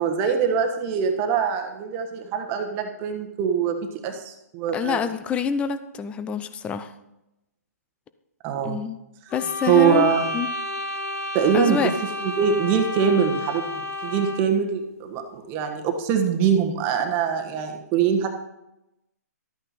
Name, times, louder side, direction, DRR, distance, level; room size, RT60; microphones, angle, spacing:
voice 1, 0.0-3.8 4.0-5.0 8.4-8.8 9.7-10.3 11.3-11.9 12.2-18.3, right 7 dB, 25° right, 4 dB, 1.3 m, -23 dB
voice 2, 4.7-6.9 8.6-9.0 9.3-10.5 11.5-11.9, left 7 dB, 15° left, 12 dB, 0.6 m, -27 dB
sound 1, 9.3-14.6, left 1 dB, 55° left, 1.3 m, -31 dB
13.0 x 9.0 x 4.1 m, 0.90 s
hypercardioid pair, 145°, 9 cm